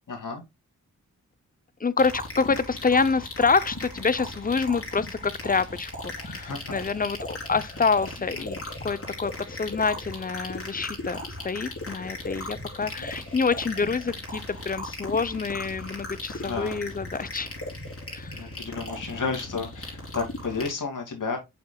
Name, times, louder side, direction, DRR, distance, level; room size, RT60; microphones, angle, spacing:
voice 1, 0.1-0.4 6.3-6.7 8.3-8.4 13.0-13.1 16.4-16.9 18.3-21.4, left 4 dB, 75° left, 2.3 m, -32 dB
voice 2, 1.8-11.2 11.4-17.5 18.1-18.5, left 4 dB, 25° left, 0.6 m, -27 dB
sound 1, 2.0-20.7, left 1 dB, 45° left, 3.5 m, -37 dB
6.6 x 6.4 x 2.3 m
cardioid pair, 55°, 32 cm